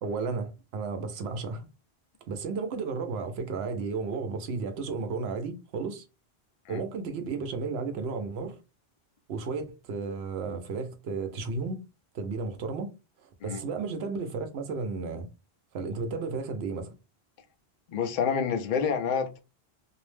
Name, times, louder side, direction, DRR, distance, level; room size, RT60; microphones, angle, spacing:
voice 1, 0.0-1.7 2.3-6.0 6.7-8.6 9.3-11.8 12.1-12.9 13.2-15.3 15.7-16.9, right 4 dB, 85° right, 0.9 m, -33 dB
voice 2, 17.9-19.4, left 6 dB, 60° left, 0.6 m, -28 dB
2.6 x 2.0 x 3.1 m
omnidirectional pair, 1.1 m